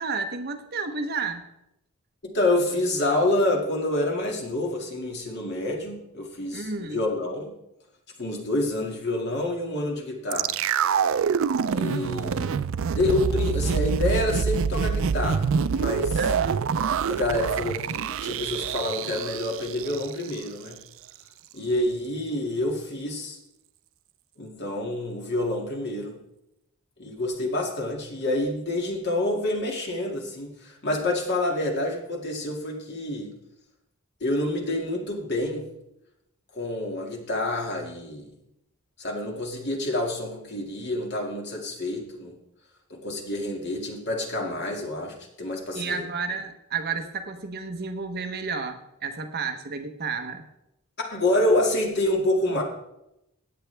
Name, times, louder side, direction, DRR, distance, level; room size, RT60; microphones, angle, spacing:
voice 1, 0.0-1.5 6.5-7.0 16.2-16.6 45.7-50.4, right 4 dB, 45° right, 7 dB, 0.9 m, -31 dB
voice 2, 2.3-7.5 8.2-10.5 11.7-12.6 12.9-16.2 17.1-20.8 21.5-23.4 24.4-26.2 27.0-33.3 34.2-35.7 36.5-38.3 39.0-42.3 42.9-46.0 51.1-52.6, left 1 dB, 50° left, 0 dB, 2.2 m, -27 dB
sound 1, 10.3-20.4 20.7-20.8, right 6 dB, 60° right, 0.4 m, -26 dB
16.5 x 9.0 x 3.4 m, 0.84 s
head